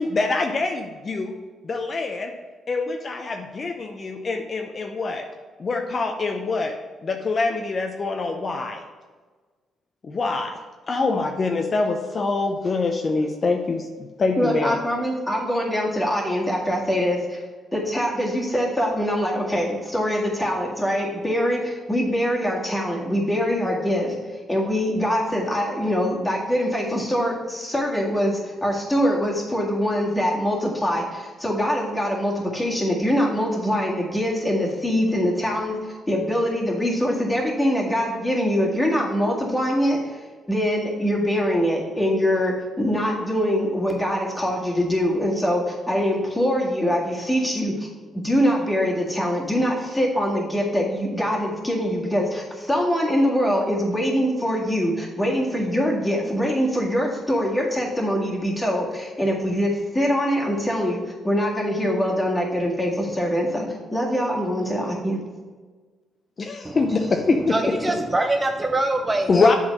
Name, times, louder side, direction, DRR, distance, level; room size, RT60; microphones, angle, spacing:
voice 1, 0.0-1.3 1.6-2.3 2.7-5.2 5.6-6.7 7.0-8.8 10.0-10.5 10.9-14.8 66.4-67.6 69.3-69.5, left 3 dB, 40° left, 3 dB, 0.6 m, -24 dB
voice 2, 14.4-17.4 17.7-24.1 24.5-40.0 40.5-47.9 48.1-63.7 63.9-65.2, equal, 10° left, -2 dB, 1.9 m, -23 dB
voice 3, 67.3-69.5, right 2 dB, 20° right, 5 dB, 0.5 m, -24 dB
7.9 x 4.0 x 5.4 m, 1.4 s
cardioid pair, 90°, 0 cm